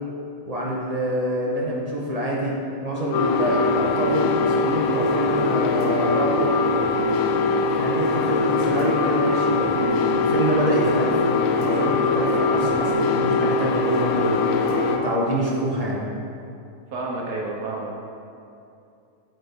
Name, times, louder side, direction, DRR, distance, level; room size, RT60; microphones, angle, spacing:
voice 1, 0.5-2.5 2.8-6.5 7.8-11.2 11.6-14.4 15.0-16.0, equal, 40° right, -4 dB, 0.5 m, -26 dB
sound 1, 3.1-15.0, left 3 dB, 70° left, 0.9 m, -22 dB
voice 2, 16.9-17.9, right 2 dB, 75° right, -2 dB, 1.3 m, -30 dB
7.9 x 4.0 x 3.5 m, 2.6 s
omnidirectional pair, 1.6 m